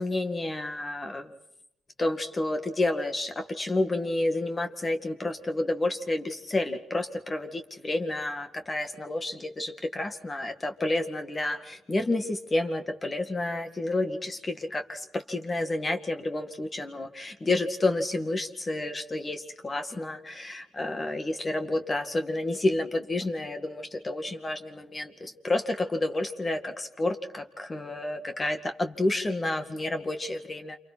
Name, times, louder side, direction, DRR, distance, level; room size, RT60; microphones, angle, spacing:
voice 1, 0.0-1.3 2.0-30.8, left 2 dB, 25° left, 6 dB, 2.1 m, -30 dB
29.0 x 28.0 x 4.3 m, 0.75 s
cardioid pair, 90°, 0 cm